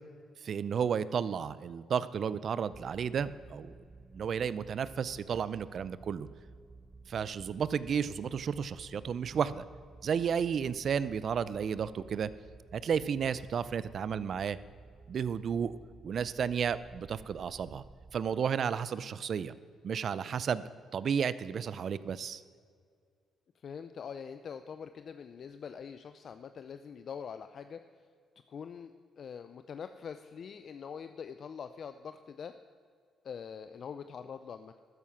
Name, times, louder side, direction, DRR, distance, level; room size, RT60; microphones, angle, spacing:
voice 1, 0.4-3.7 4.1-6.3 7.1-9.6 10.0-12.3 12.7-14.6 15.1-15.7 16.0-17.8 18.1-19.5 19.8-20.6 20.9-22.4, right 7 dB, 55° right, 16 dB, 0.5 m, -32 dB
sound 1, 2.7-18.3, right 3 dB, 20° right, 0.7 m, -54 dB
voice 2, 23.5-27.8 28.5-32.6 33.2-34.8, left 7 dB, 55° left, 10 dB, 0.5 m, -44 dB
12.5 x 9.7 x 5.8 m, 2.2 s
cardioid pair, 90°, 0 cm